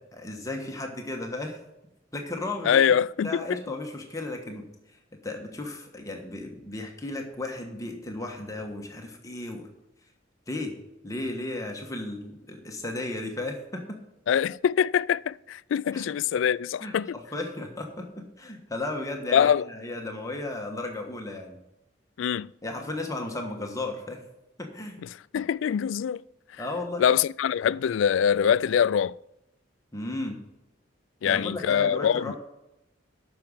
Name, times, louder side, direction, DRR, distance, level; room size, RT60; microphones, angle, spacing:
voice 1, 0.1-1.6 2.1-2.9 3.2-5.0 5.2-9.7 10.5-10.7 11.0-14.0 15.9-16.1 16.3-16.4 16.8-21.6 22.6-24.2 24.6-25.0 26.6-27.0 29.9-30.4 31.2-32.3, left 2 dB, 15° left, 1.3 m, -35 dB
voice 2, 2.6-3.3 14.3-17.1 19.3-19.6 22.2-22.5 25.3-26.2 27.0-29.2 31.2-32.3, left 8 dB, 75° left, 0.3 m, -23 dB
9.0 x 6.3 x 7.2 m
head